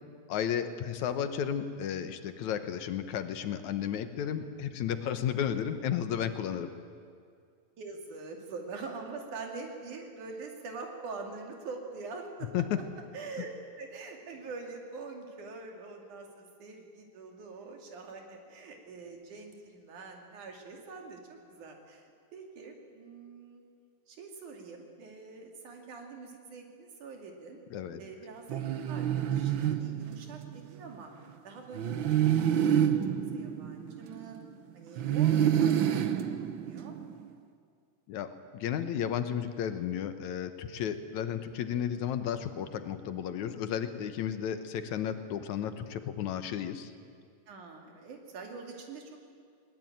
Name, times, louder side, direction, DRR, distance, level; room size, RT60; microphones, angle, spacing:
voice 1, 0.3-6.7 12.5-12.8 27.7-28.0 38.1-46.9, left 9 dB, 75° left, 10 dB, 2.4 m, -33 dB
voice 2, 7.8-12.5 13.1-23.6 24.1-27.6 28.0-28.6 28.9-31.1 31.4-34.4 34.7-37.0 47.5-49.3, right 4 dB, 85° right, 2 dB, 4.0 m, -44 dB
sound 1, 28.5-30.6 31.7-34.4 35.0-37.2, right 10 dB, 70° right, 1.2 m, -28 dB
20.5 x 20.0 x 9.2 m, 2.2 s
omnidirectional pair, 3.4 m